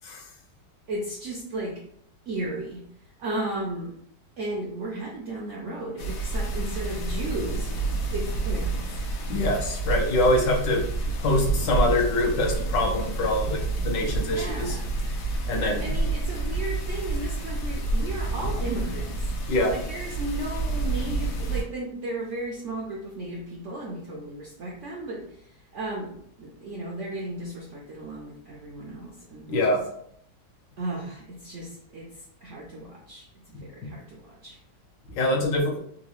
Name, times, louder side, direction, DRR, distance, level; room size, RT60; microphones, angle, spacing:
voice 1, 0.9-1.8 2.3-2.8 3.2-3.9 4.4-7.7 8.1-9.0 14.2-14.9 15.6-19.3 19.7-29.8 30.8-34.6, right 1 dB, 70° right, -3 dB, 0.7 m, -35 dB
sound 1, 6.0-21.6, right 3 dB, 65° left, 0.9 m, -29 dB
voice 2, 9.3-10.8 11.2-14.8 15.5-15.8 19.5-19.7 29.5-29.8 35.1-35.8, left 1 dB, 80° left, -1 dB, 1.5 m, -24 dB
3.8 x 2.3 x 2.9 m, 0.69 s
omnidirectional pair, 1.9 m